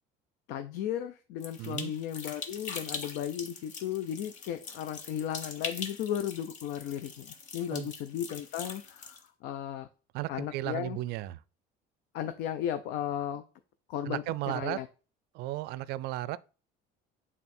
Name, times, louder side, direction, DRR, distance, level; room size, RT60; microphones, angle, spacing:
voice 1, 0.5-9.9 10.3-11.0 12.1-13.4 13.9-14.9, left 10 dB, 65° left, 0.6 m, -35 dB
sound 1, 1.4-9.2, left 5 dB, 40° left, 0.9 m, -42 dB
voice 2, 1.6-1.9 7.7-7.9 10.1-11.4 14.1-14.8 15.3-16.4, right 16 dB, 60° right, 0.4 m, -34 dB
8.3 x 3.7 x 4.3 m
cardioid pair, 155°, 19 cm